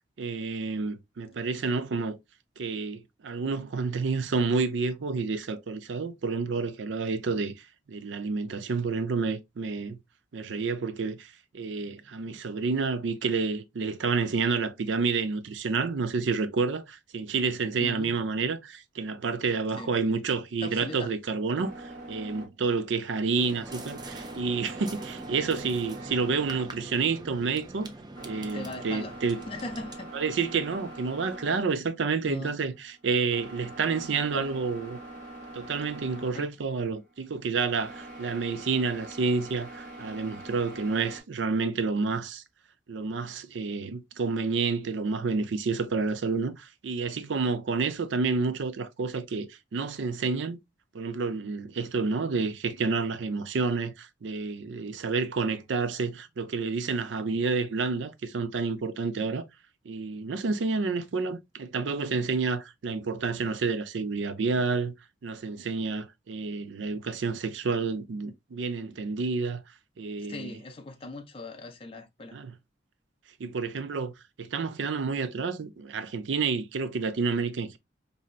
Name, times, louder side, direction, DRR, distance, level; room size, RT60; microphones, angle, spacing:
voice 1, 0.2-2.2 2.6-7.5 7.9-10.0 10.3-27.9 28.2-29.4 30.1-35.0 35.5-42.4 42.9-50.6 50.9-59.5 59.9-64.9 65.2-69.6 70.0-70.6 72.3-72.5 73.4-74.1 74.4-77.8, right 4 dB, 80° right, 0.5 m, -29 dB
voice 2, 17.8-18.1 19.8-19.9 20.6-21.1 28.5-29.1 29.5-30.1 32.3-32.6 34.3-34.5 36.3-36.5 70.3-72.4, left 2 dB, 30° left, 0.5 m, -39 dB
sound 1, 21.5-41.2, right 1 dB, 45° right, 1.5 m, -44 dB
sound 2, 23.3-30.0, right 2 dB, 20° right, 0.5 m, -44 dB
4.2 x 2.7 x 2.4 m
head